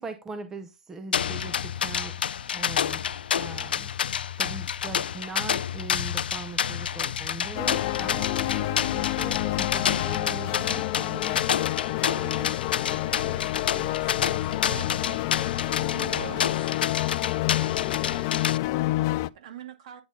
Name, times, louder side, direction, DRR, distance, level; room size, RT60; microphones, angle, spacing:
voice 1, 0.0-2.2 2.5-3.9 4.4-12.5, right 3 dB, 10° right, 0.6 m, -40 dB
sound 1, 1.1-18.6, left 8 dB, 80° left, 0.5 m, -29 dB
sound 2, 7.5-19.3, left 18 dB, 25° left, 0.4 m, -29 dB
voice 2, 12.8-15.2 15.7-16.7, right 9 dB, 80° right, 0.5 m, -44 dB
voice 3, 17.5-20.0, right 10 dB, 40° right, 2.4 m, -48 dB
9.4 x 6.1 x 3.7 m
hypercardioid pair, 165°, 5 cm